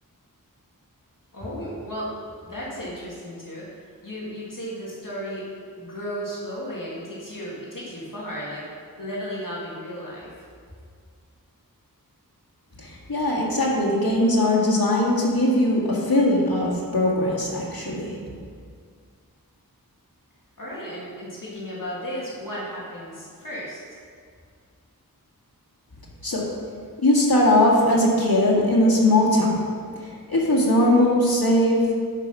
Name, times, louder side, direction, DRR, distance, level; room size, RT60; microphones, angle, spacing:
voice 1, 1.3-2.1 2.4-3.7 4.0-5.5 5.8-8.7 9.0-10.3 20.6-23.8, equal, 65° left, -7 dB, 2.3 m, -34 dB
voice 2, 12.8-18.2 26.2-26.5 27.0-29.5 30.3-31.8, left 1 dB, 85° left, -4 dB, 2.2 m, -20 dB
12.0 x 5.9 x 5.4 m, 2.1 s
wide cardioid pair, 40°, 35 cm